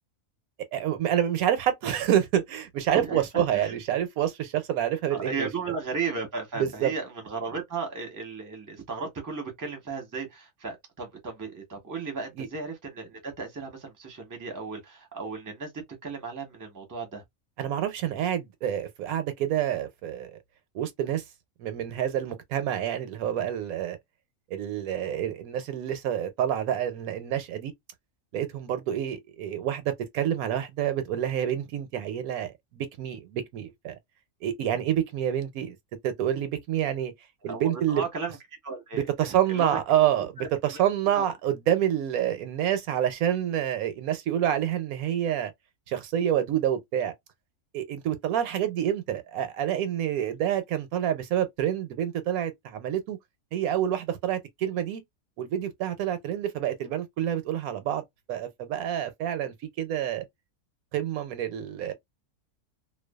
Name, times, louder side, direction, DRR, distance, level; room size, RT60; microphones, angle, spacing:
voice 1, 0.7-5.5 6.6-6.9 12.4-12.5 17.6-20.4 20.7-21.2 21.6-24.0 24.5-27.7 28.3-34.0 34.4-35.8 36.0-37.1 37.4-38.0 38.9-45.5 45.9-47.1 47.7-53.2 53.5-55.0 55.4-58.0 58.3-60.3 60.9-61.9, right 10 dB, 80° right, 1.0 m, -28 dB
voice 2, 2.9-3.7 5.1-17.2 37.4-38.4 38.6-39.8 40.4-40.8 41.1-41.3, right 4 dB, 20° right, 0.6 m, -35 dB
2.5 x 2.2 x 2.2 m
omnidirectional pair, 1.5 m